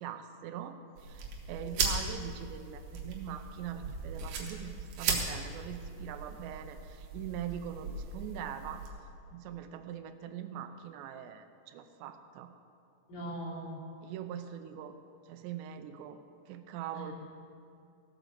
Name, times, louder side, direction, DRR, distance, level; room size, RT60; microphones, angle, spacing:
voice 1, 0.0-8.9 9.3-12.5 14.0-15.0 15.3-16.2 16.5-17.1, right 9 dB, 85° right, 8 dB, 2.9 m, -42 dB
sound 1, 1.0-8.9, right 4 dB, 60° right, 2.7 m, -37 dB
voice 2, 1.6-1.9 13.1-13.7 16.9-17.1, right 1 dB, 55° left, -5 dB, 4.5 m, -41 dB
16.0 x 8.9 x 6.7 m, 2.5 s
omnidirectional pair, 5.0 m